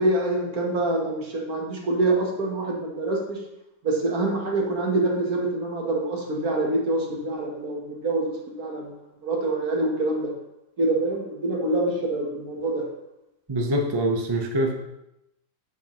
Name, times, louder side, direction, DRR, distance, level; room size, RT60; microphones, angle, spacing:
voice 1, 0.0-3.4 3.8-8.9 9.2-10.3 10.8-12.9, right 2 dB, 60° right, 0 dB, 1.7 m, -25 dB
voice 2, 13.5-14.7, right 1 dB, 25° right, 3 dB, 0.5 m, -24 dB
7.8 x 7.3 x 3.0 m, 0.87 s
omnidirectional pair, 1.8 m